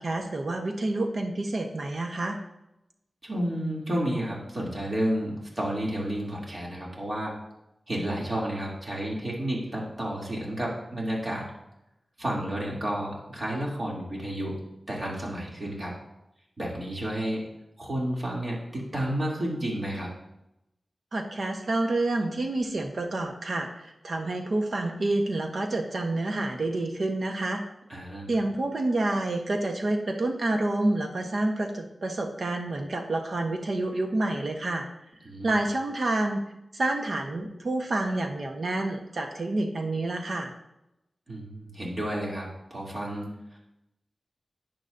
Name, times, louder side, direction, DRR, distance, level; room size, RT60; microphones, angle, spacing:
voice 1, 0.0-2.4 21.1-27.6 28.3-34.9 35.4-36.4 36.7-40.5, right 2 dB, 65° right, 3 dB, 1.2 m, -28 dB
voice 2, 3.2-7.3 7.9-11.5 12.2-14.6 14.9-15.9 16.6-17.4 17.8-20.1 27.9-28.3 35.2-35.5 41.3-43.3, right 1 dB, 40° right, -4 dB, 2.9 m, -31 dB
11.0 x 9.2 x 2.7 m, 0.87 s
wide cardioid pair, 80°, 0 cm